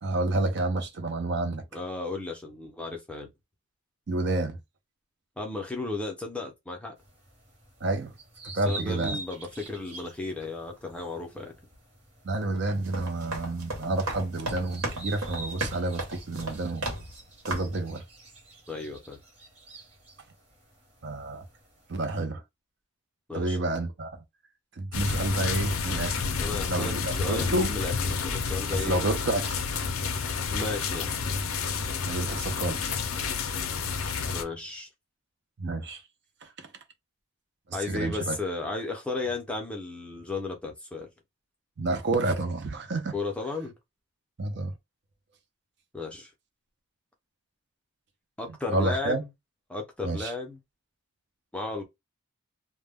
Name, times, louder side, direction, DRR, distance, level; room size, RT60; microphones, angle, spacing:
voice 1, 0.0-1.6 4.1-4.6 7.8-8.1 8.4-9.2 12.2-16.9 17.5-18.0 21.0-21.4 21.9-22.4 23.3-24.1 24.8-26.4 26.7-27.7 28.8-29.5 32.0-33.0 35.6-36.0 36.4-36.7 37.7-38.4 41.8-43.1 44.4-44.7 48.7-49.2 50.0-50.3, right 2 dB, 50° right, 0.5 m, -29 dB
voice 2, 1.7-3.3 5.4-6.9 8.7-11.5 18.7-19.2 23.3-23.6 26.4-29.0 30.5-31.2 34.3-34.9 37.7-41.1 43.1-43.7 45.9-46.3 48.4-49.3 49.7-50.6 51.5-51.8, left 3 dB, 5° left, 0.5 m, -34 dB
sound 1, 7.0-22.2, right 2 dB, 30° right, 1.0 m, -47 dB
sound 2, 12.7-17.2 17.4-17.8, right 1 dB, 75° right, 1.1 m, -35 dB
sound 3, 24.9-34.4, left 5 dB, 70° left, 0.4 m, -30 dB
2.1 x 2.1 x 3.4 m
head